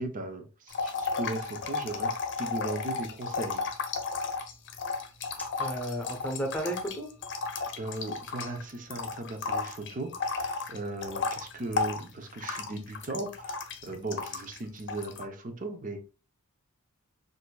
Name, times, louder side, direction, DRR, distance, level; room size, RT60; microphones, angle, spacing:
voice 1, 0.0-3.6 7.8-16.1, right 2 dB, 40° right, 0.7 m, -37 dB
sound 1, 0.7-8.6 8.9-14.6 14.9-15.2, left 4 dB, 55° left, 0.7 m, -33 dB
voice 2, 5.4-7.1, equal, 5° left, 0.9 m, -33 dB
6.4 x 2.6 x 2.3 m
head